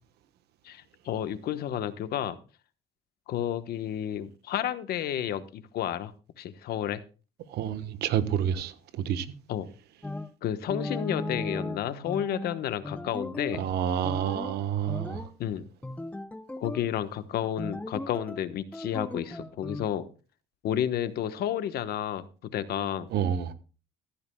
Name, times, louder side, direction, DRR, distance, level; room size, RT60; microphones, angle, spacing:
voice 1, 0.6-2.4 3.3-6.1 6.4-7.0 9.5-9.7 10.4-13.6 15.4-15.7 16.6-20.1 20.6-22.3 22.5-23.1, left 10 dB, 70° left, 1.2 m, -31 dB
voice 2, 7.5-9.3 13.6-15.3 23.1-23.5, right 9 dB, 75° right, 1.2 m, -29 dB
sound 1, 10.0-10.3 10.7-13.7 14.0-14.6 14.9-15.3 15.8-16.9 17.6-18.4 18.7-19.9, left 2 dB, 10° left, 0.6 m, -36 dB
14.5 x 14.0 x 2.3 m
cardioid pair, 110°, 17 cm